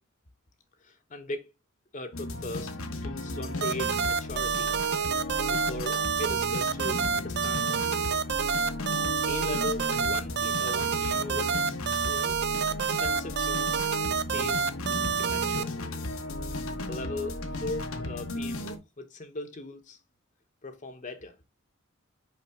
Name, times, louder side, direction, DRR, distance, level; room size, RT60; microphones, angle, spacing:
voice 1, 0.8-1.5 1.9-4.8 5.1-8.0 9.3-12.4 12.9-13.8 14.1-14.7 15.2-15.8 16.9-20.0 20.6-21.4, left 2 dB, 40° left, 0.9 m, -39 dB
sound 1, 2.1-18.8, left 2 dB, 85° left, 1.2 m, -35 dB
sound 2, 3.6-15.6, right 7 dB, 55° right, 0.5 m, -28 dB
5.5 x 5.3 x 3.5 m
head